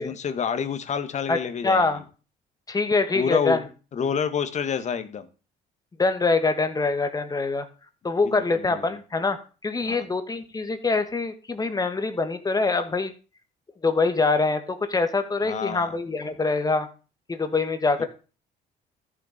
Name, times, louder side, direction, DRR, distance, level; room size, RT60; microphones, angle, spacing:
voice 1, 0.0-1.9 3.1-3.6 3.9-5.3 8.2-8.9 9.8-10.0 15.4-15.9 18.0-18.1, left 7 dB, 45° left, 10 dB, 1.6 m, -28 dB
voice 2, 1.6-2.0 2.7-3.6 6.0-7.7 8.0-13.1 13.8-16.9 17.3-18.1, left 3 dB, 20° left, 9 dB, 1.8 m, -24 dB
13.5 x 6.9 x 5.1 m, 0.35 s
cardioid pair, 110°, 17 cm